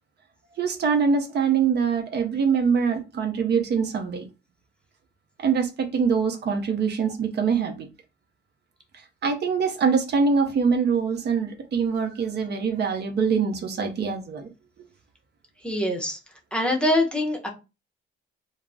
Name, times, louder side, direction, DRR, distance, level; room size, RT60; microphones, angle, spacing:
voice 1, 0.6-4.3 5.4-7.9 9.2-14.5, right 6 dB, 55° right, 0.6 m, -24 dB
voice 2, 15.6-16.2 16.5-17.5, left 1 dB, 5° left, 0.7 m, -24 dB
2.3 x 2.0 x 3.3 m
cardioid pair, 90°, 20 cm